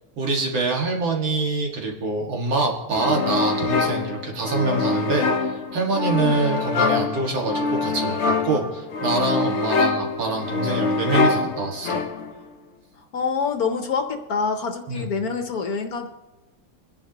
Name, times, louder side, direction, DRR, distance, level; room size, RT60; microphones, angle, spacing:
voice 1, 0.2-12.0 14.9-15.1, right 3 dB, 80° right, 0 dB, 2.6 m, -25 dB
sound 1, 2.9-12.4, left 4 dB, 75° left, 0.6 m, -24 dB
voice 2, 13.1-16.1, left 5 dB, 60° left, 6 dB, 1.2 m, -26 dB
27.5 x 10.5 x 2.9 m, 1.1 s
omnidirectional pair, 2.1 m